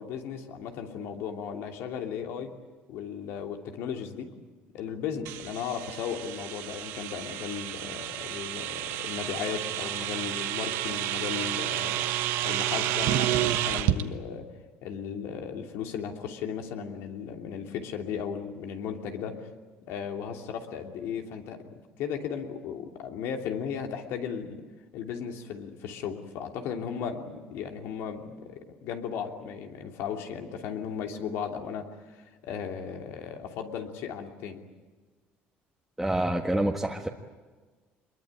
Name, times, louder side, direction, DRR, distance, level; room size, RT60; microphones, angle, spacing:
voice 1, 0.0-2.5 2.9-4.3 4.7-12.1 12.4-14.4 14.8-19.4 19.9-21.6 22.0-24.6 24.9-34.6, left 7 dB, 75° left, 4 dB, 2.9 m, -36 dB
sound 1, 5.3-14.0, right 13 dB, 80° right, 1.2 m, -30 dB
voice 2, 36.0-37.1, right 1 dB, 5° right, 0 dB, 1.5 m, -27 dB
25.0 x 22.0 x 9.1 m, 1.3 s
cardioid pair, 115°, 4 cm